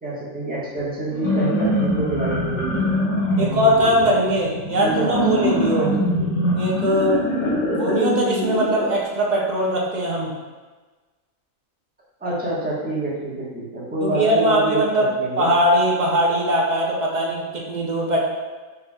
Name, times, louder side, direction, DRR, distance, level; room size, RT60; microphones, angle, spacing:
voice 1, 0.0-2.9 3.4-4.1 4.8-5.5 5.8-6.1 12.2-15.5, right 2 dB, 5° right, -9 dB, 1.1 m, -27 dB
sound 1, 1.0-8.9, equal, 80° left, 1.6 m, -23 dB
voice 2, 3.4-5.9 6.6-7.2 7.7-10.3 14.0-15.1 15.4-18.2, equal, 40° right, -3 dB, 0.7 m, -20 dB
5.7 x 3.8 x 2.3 m, 1.3 s
omnidirectional pair, 1.4 m